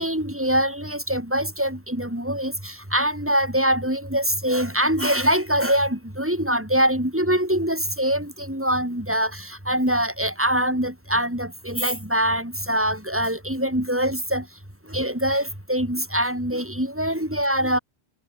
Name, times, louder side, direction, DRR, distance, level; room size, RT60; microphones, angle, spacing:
voice 1, 0.0-14.5 14.9-17.8, equal, 10° right, 4.9 m, -24 dB
omnidirectional pair, 1.1 m